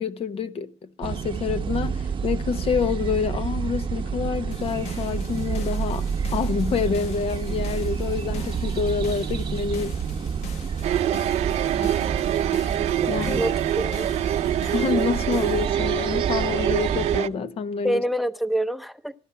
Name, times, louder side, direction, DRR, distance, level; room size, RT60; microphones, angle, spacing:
voice 1, 0.0-10.0 13.1-13.4 14.7-18.0, left 6 dB, 55° left, 1.0 m, -27 dB
sound 1, 1.0-17.2, right 6 dB, 45° right, 0.9 m, -29 dB
sound 2, 4.5-15.7, left 4 dB, 75° left, 1.3 m, -42 dB
sound 3, 10.8-17.3, right 11 dB, 70° right, 0.6 m, -25 dB
voice 2, 13.3-14.1 17.8-19.1, right 1 dB, ahead, 0.7 m, -27 dB
14.5 x 11.0 x 5.8 m
cardioid pair, 75°, 11 cm